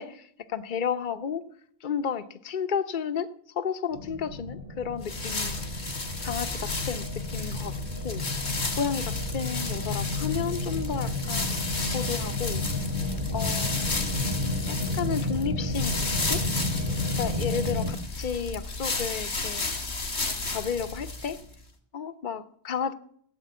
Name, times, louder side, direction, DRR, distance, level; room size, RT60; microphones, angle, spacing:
voice 1, 0.0-1.4 1.8-3.3 3.6-5.6 6.2-7.1 7.3-7.7 8.0-8.2 8.8-11.5 11.9-12.6 13.3-14.0 14.7-15.9 16.3-16.4 17.1-19.7 20.2-21.4 21.9-22.9, left 7 dB, 50° left, 11 dB, 1.0 m, -32 dB
sound 1, 3.9-17.9, left 2 dB, 55° right, 3.2 m, -32 dB
sound 2, 5.0-21.5, left 3 dB, 90° left, 2.5 m, -33 dB
17.0 x 8.0 x 9.2 m, 0.65 s
omnidirectional pair, 1.1 m